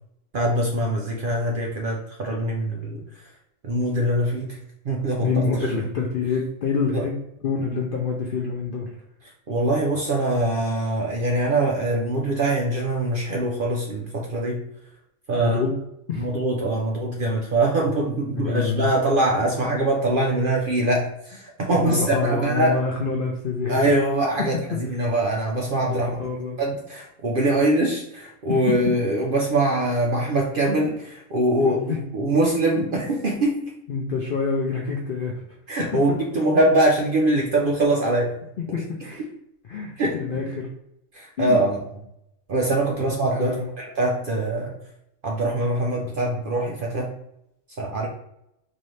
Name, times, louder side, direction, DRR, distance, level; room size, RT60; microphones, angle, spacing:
voice 1, 0.3-3.0 3.6-4.6 4.8-5.4 6.9-7.0 9.5-14.6 15.3-15.6 16.2-22.8 23.7-26.1 26.6-31.8 32.1-33.7 35.7-38.3 40.0-40.4 41.1-41.8 42.5-44.7 45.2-47.1 47.8-48.1, right 1 dB, 60° right, -1 dB, 0.6 m, -23 dB
voice 2, 5.2-8.9 15.3-15.8 16.1-16.3 18.3-19.0 21.7-23.9 24.4-24.8 25.8-26.6 28.5-28.9 31.6-32.0 33.9-35.4 35.8-36.2 38.7-39.3 39.6-40.7 41.4-41.6 43.3-43.7, left 5 dB, 65° left, -1 dB, 0.5 m, -27 dB
4.0 x 2.7 x 3.1 m, 0.79 s
omnidirectional pair, 1.4 m